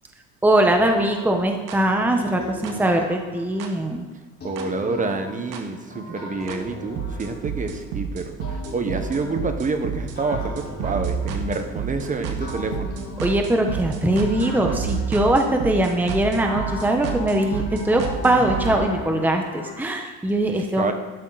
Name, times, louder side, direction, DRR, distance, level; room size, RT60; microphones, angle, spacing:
voice 1, 0.4-4.1 13.2-20.9, right 1 dB, 5° right, 3 dB, 1.1 m, -21 dB
sound 1, 0.7-3.8 4.4-7.9 8.4-11.9 12.4-15.9 16.4-19.7, left 2 dB, 30° left, 4.6 m, -38 dB
sound 2, 1.7-1.8 2.6-2.7 3.6-3.7 4.6-4.7 5.5-5.6 6.5-6.6 7.0-18.8, right 6 dB, 75° right, 2.0 m, -30 dB
voice 2, 4.4-12.9 20.5-20.9, right 3 dB, 25° right, 7 dB, 1.2 m, -28 dB
12.5 x 12.0 x 4.1 m, 1.2 s
cardioid pair, 135°, 32 cm